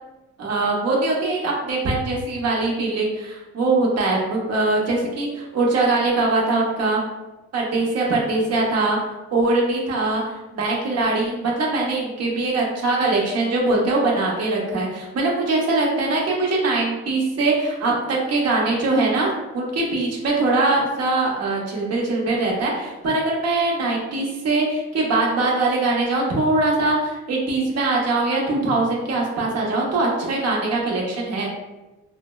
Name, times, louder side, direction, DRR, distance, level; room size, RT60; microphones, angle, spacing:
voice 1, 0.4-7.0 7.5-9.0 9.3-31.5, right 2 dB, 55° right, -3 dB, 0.9 m, -22 dB
4.3 x 2.0 x 2.2 m, 1.1 s
cardioid pair, 90°, 30 cm